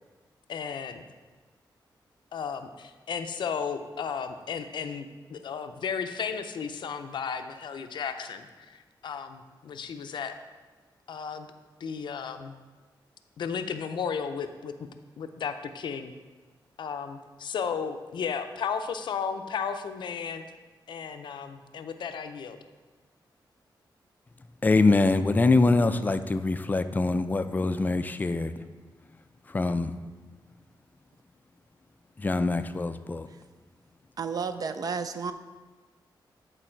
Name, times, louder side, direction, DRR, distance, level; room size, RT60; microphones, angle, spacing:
voice 1, 0.5-1.0 2.3-10.4 11.1-11.5 11.8-12.5 13.4-14.7 15.2-16.1 16.8-20.4 20.9-22.6, left 6 dB, 75° left, 8 dB, 0.5 m, -34 dB
voice 2, 24.6-28.5 29.5-30.0 32.2-33.3, left 3 dB, 20° left, 10 dB, 0.3 m, -24 dB
voice 3, 34.2-35.3, right 5 dB, 50° right, 10 dB, 0.4 m, -31 dB
10.0 x 4.0 x 4.5 m, 1.4 s
wide cardioid pair, 125°, 8 cm